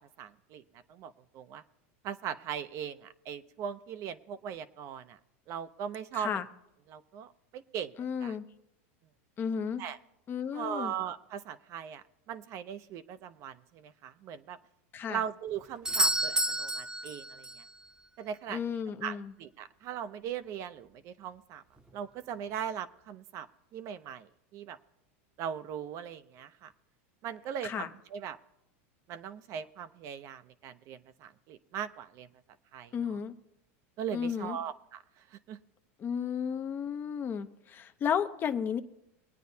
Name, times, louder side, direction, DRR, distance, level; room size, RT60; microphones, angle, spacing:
voice 1, 0.2-0.6 0.9-1.6 2.0-5.2 5.5-6.4 6.9-7.9 8.2-8.4 9.8-10.0 10.5-14.6 15.1-17.6 18.2-21.6 21.9-23.5 23.7-24.8 25.4-26.7 27.2-28.4 29.1-32.3 32.7-33.2 34.0-35.0 35.3-35.6, right 8 dB, 45° right, 12 dB, 0.6 m, -39 dB
voice 2, 6.1-6.4 8.0-8.5 9.4-9.8 10.3-10.9 14.9-15.2 18.5-19.3 27.6-27.9 32.9-33.3 34.1-34.6 36.0-38.8, left 7 dB, 30° left, 9 dB, 0.6 m, -33 dB
Doorbell, 15.8-17.7 21.8-21.9, right 1 dB, 10° right, 0.8 m, -30 dB
22.0 x 9.2 x 2.8 m, 0.86 s
supercardioid pair, 135°, 7 cm